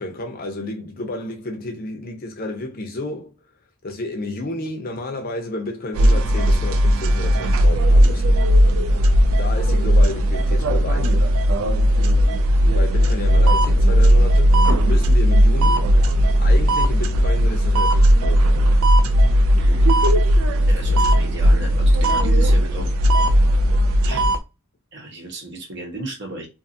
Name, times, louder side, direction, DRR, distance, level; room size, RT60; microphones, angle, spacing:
voice 1, 0.0-3.3 3.8-8.3 9.4-11.2 12.7-16.0 16.4-18.7, left 2 dB, 45° left, 0.6 m, -31 dB
sound 1, 5.9-24.4, equal, 75° right, 0.4 m, -16 dB
voice 2, 19.6-19.9 20.7-22.9 24.0-24.2 24.9-26.5, right 2 dB, 55° right, 1.0 m, -34 dB
2.6 x 2.4 x 2.6 m
head